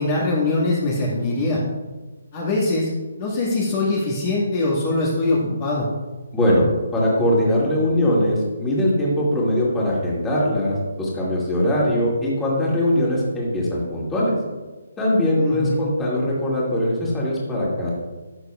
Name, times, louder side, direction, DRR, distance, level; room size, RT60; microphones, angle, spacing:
voice 1, 0.0-1.6 2.3-2.9 3.2-5.9 15.3-15.8, left 2 dB, 35° left, -5 dB, 1.8 m, -22 dB
voice 2, 6.3-6.7 6.9-14.3 15.0-17.9, left 1 dB, 10° left, -5 dB, 2.3 m, -21 dB
12.5 x 6.6 x 2.4 m, 1.2 s
figure-of-eight pair, 145°, 0 cm